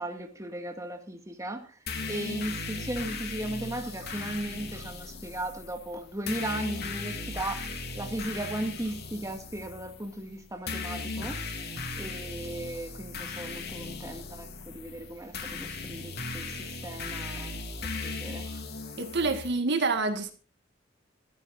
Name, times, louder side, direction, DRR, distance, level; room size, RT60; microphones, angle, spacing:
voice 1, 0.0-1.8 2.1-7.6 7.9-11.4 12.0-17.6 18.0-18.6, right 1 dB, 15° right, 4 dB, 2.2 m, -36 dB
sound 1, 1.9-19.5, left 3 dB, 55° left, 3.4 m, -38 dB
voice 2, 19.0-20.3, right 3 dB, 60° right, 7 dB, 2.0 m, -27 dB
24.0 x 14.0 x 2.7 m, 0.34 s
head